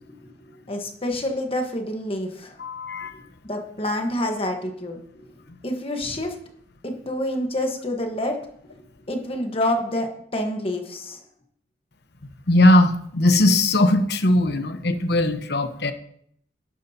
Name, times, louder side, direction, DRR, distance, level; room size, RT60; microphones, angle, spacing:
voice 1, 0.1-2.5 3.1-5.0 5.6-6.3 6.8-8.4 9.1-11.2, left 1 dB, 30° left, 3 dB, 1.3 m, -28 dB
voice 2, 2.6-3.1 5.5-5.6 12.5-15.9, left 1 dB, 65° left, 9 dB, 1.0 m, -19 dB
12.0 x 9.8 x 2.9 m, 0.67 s
head